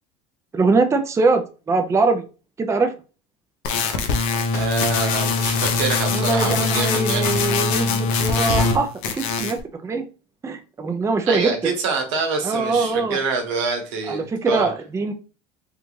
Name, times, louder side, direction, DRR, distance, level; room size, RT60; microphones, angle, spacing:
voice 1, 0.5-2.2 2.6-2.9 6.1-10.0 10.4-11.7 12.4-13.2 14.1-15.1, right 3 dB, 20° right, 5 dB, 0.5 m, -22 dB
sound 1, 3.6-8.8 9.0-9.6, left 4 dB, 75° left, 0.6 m, -22 dB
voice 2, 4.5-7.3 11.3-14.7, right 4 dB, 85° right, 4 dB, 1.0 m, -26 dB
3.4 x 2.5 x 3.1 m, 0.33 s
supercardioid pair, 90°, 16 cm